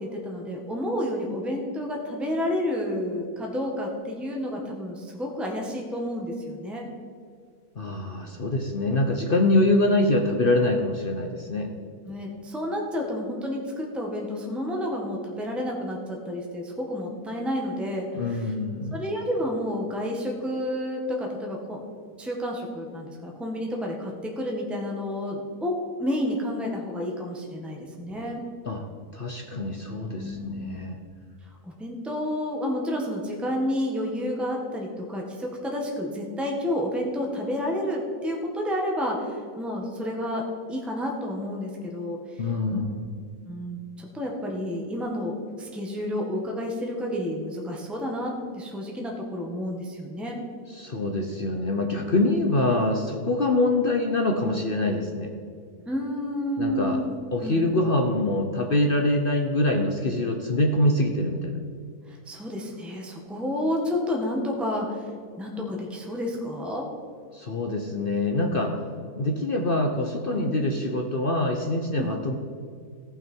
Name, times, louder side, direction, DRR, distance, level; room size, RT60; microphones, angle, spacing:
voice 1, 0.0-6.9 12.1-18.5 18.9-21.8 22.2-28.4 30.2-30.8 31.6-42.4 42.7-42.8 43.5-50.4 55.9-57.1 57.4-57.6 62.1-65.1 65.4-66.8 70.3-70.5 71.9-72.1, left 1 dB, ahead, 0 dB, 1.5 m, -30 dB
voice 2, 7.8-11.7 18.1-19.0 27.9-28.0 28.7-28.9 29.1-31.0 42.4-43.1 50.7-55.3 56.6-57.0 57.3-61.6 67.3-68.8 69.1-72.3, left 2 dB, 45° left, 3 dB, 0.9 m, -25 dB
17.5 x 6.2 x 4.5 m, 2.3 s
omnidirectional pair, 1.7 m